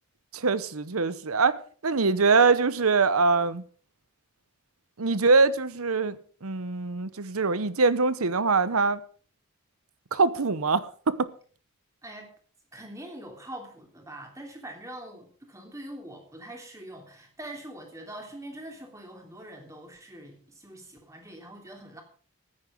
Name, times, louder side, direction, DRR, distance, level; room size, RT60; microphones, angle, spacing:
voice 1, 0.3-1.6 1.8-3.6 5.0-9.0 10.1-11.3, right 4 dB, 85° right, 1.0 m, -23 dB
voice 2, 12.0-12.3 12.7-22.0, right 1 dB, 15° right, 3.1 m, -43 dB
14.5 x 9.9 x 5.2 m
head